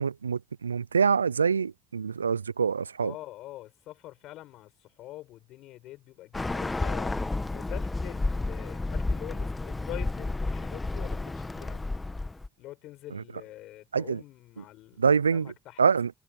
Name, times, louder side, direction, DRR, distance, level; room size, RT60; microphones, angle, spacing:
voice 1, 0.0-3.1 13.9-14.2 15.0-15.5 15.8-16.1, right 6 dB, 90° right, 0.4 m, -25 dB
voice 2, 3.0-11.8 12.6-15.8, left 16 dB, 70° left, 7.7 m, -45 dB
Bird, 6.3-12.5, left 2 dB, 20° left, 1.8 m, -31 dB
figure-of-eight pair, 40°, 0 cm